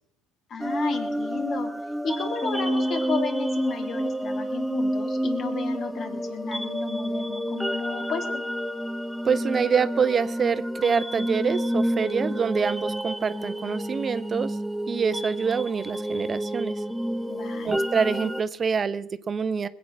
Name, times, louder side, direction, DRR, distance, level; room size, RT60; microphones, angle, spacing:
voice 1, 0.5-1.7 2.0-8.3 17.3-17.9, left 5 dB, 50° left, 4 dB, 3.0 m, -33 dB
sound 1, 0.6-18.4, equal, ahead, 0.8 m, -29 dB
voice 2, 9.2-14.6 14.9-16.7 17.6-19.7, right 6 dB, 35° right, 14 dB, 0.8 m, -26 dB
20.5 x 8.4 x 6.1 m, 0.78 s
supercardioid pair, 80°, 0 cm